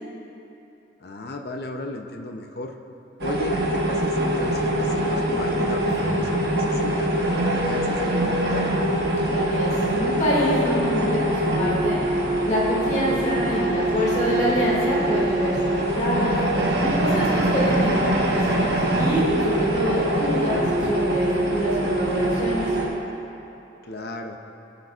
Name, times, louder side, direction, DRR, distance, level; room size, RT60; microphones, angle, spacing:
voice 1, 1.0-2.8 3.2-7.1 7.4-8.7 17.1-17.5 23.8-24.4, left 2 dB, 55° left, 4 dB, 0.6 m, -34 dB
sound 1, 3.2-22.9, right 1 dB, 55° right, 1.2 m, -23 dB
Strum, 5.8-10.3, equal, 15° right, 1.1 m, -40 dB
voice 2, 9.2-12.0 12.4-16.4 16.8-22.7, equal, 35° left, -7 dB, 2.1 m, -26 dB
20.0 x 6.7 x 2.4 m, 2.9 s
head